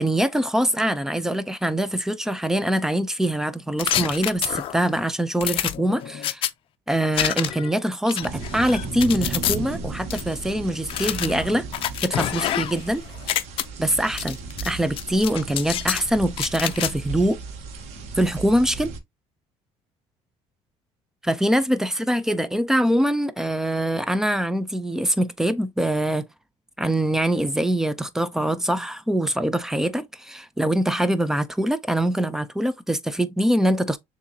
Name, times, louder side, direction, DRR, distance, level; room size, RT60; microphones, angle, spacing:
voice 1, 0.0-6.4 6.9-11.7 12.0-13.0 13.8-14.4 14.6-17.4 18.2-18.9 21.2-26.3 26.8-34.0, right 1 dB, 5° right, 0.4 m, -23 dB
sound 1, 3.8-4.9 5.4-6.5 7.1-7.7 8.1-9.6 10.1-10.2 10.9-12.9 13.2-13.6 14.2-14.7 15.0-16.0 16.4-16.9, left 12 dB, 50° left, 0.5 m, -27 dB
sound 2, 8.2-19.0, right 4 dB, 75° right, 1.2 m, -35 dB
6.7 x 2.6 x 2.7 m
cardioid pair, 135°, 12 cm